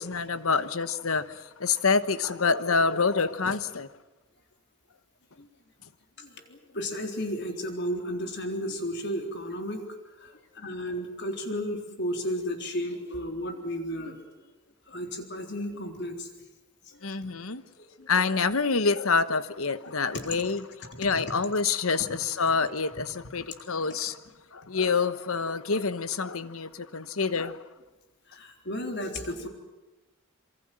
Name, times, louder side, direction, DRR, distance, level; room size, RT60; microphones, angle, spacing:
voice 1, 0.0-3.9 17.0-17.6 18.1-24.2 24.5-27.6, left 4 dB, 80° left, 1.2 m, -27 dB
voice 2, 6.2-14.2 14.9-16.3 16.9-17.3 17.8-18.1 20.1-20.2 20.9-21.3 23.4-23.5 23.8-24.0 27.3-27.4 28.3-29.5, equal, 55° left, 3.9 m, -34 dB
26.5 x 24.0 x 7.8 m
head